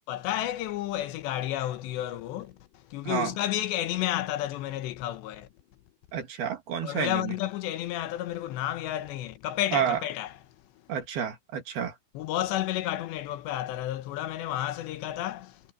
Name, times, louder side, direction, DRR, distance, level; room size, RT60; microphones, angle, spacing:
voice 1, 0.1-5.5 6.8-10.4 12.1-15.7, left 13 dB, 80° left, 3.2 m, -31 dB
voice 2, 6.1-7.3 9.7-10.0 10.9-11.9, right 8 dB, 60° right, 4.2 m, -29 dB
omnidirectional pair, 5.1 m